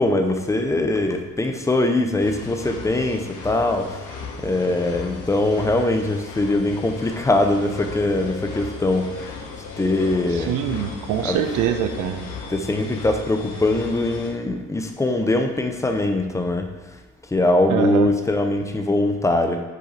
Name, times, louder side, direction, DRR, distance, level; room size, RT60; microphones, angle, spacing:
voice 1, 0.0-3.9 4.4-9.1 9.8-10.5 11.2-11.5 12.5-16.7 17.3-19.6, left 2 dB, 10° left, 5 dB, 0.4 m, -22 dB
sound 1, 2.2-14.3, left 4 dB, 80° left, 0.7 m, -36 dB
voice 2, 10.5-12.3 17.7-18.1, right 9 dB, 85° right, 8 dB, 0.5 m, -23 dB
4.9 x 2.5 x 4.1 m, 1.1 s
cardioid pair, 90°, 30 cm